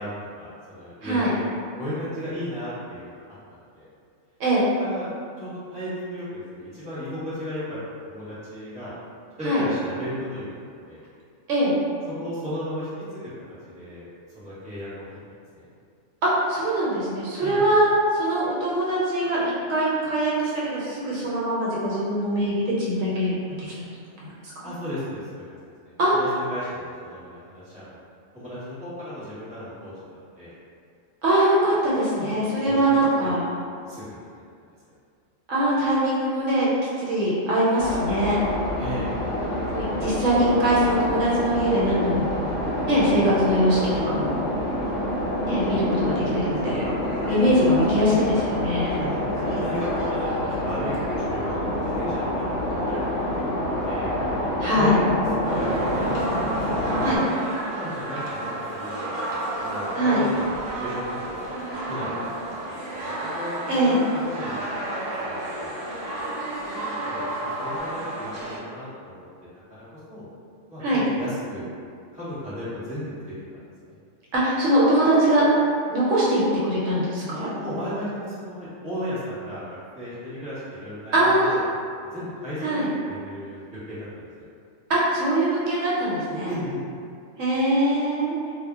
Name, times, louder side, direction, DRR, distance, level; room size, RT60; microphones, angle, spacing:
voice 1, 0.0-1.4 1.8-3.2 3.7-3.9 4.8-5.1 5.4-7.8 8.0-8.9 9.4-11.0 12.2-13.3 13.7-15.0 15.5-15.7 17.4-17.6 24.6-28.0 28.3-29.9 30.3-30.5 32.2-33.3 33.9-34.4 38.8-39.1 47.2-47.5 49.0-54.1 54.7-55.0 55.3-61.4 61.9-64.8 65.1-65.7 66.6-69.3 69.9-70.2 70.7-70.8 71.1-71.6 72.1-73.9 77.3-81.6 82.0-84.5 86.4-86.8, equal, 5° right, -12 dB, 0.8 m, -35 dB
voice 2, 1.0-1.3 4.4-4.7 9.4-9.6 11.5-11.7 16.2-23.7 24.2-24.6 26.0-26.1 31.2-33.5 35.5-36.7 37.0-38.4 39.7-42.3 42.9-44.4 45.4-46.8 47.2-48.9 54.6-55.0 57.0-57.2 59.9-60.2 63.7-64.0 70.8-71.0 74.3-75.5 75.9-77.5 81.1-81.6 82.6-82.9 84.9-86.5 87.4-88.4, right 1 dB, 75° right, -7 dB, 0.9 m, -22 dB
sound 1, 37.8-57.2, left 1 dB, 70° left, 0.8 m, -27 dB
sound 2, 55.4-68.6, right 1 dB, 50° right, 0.7 m, -32 dB
2.1 x 2.1 x 3.5 m, 2.3 s
omnidirectional pair, 1.4 m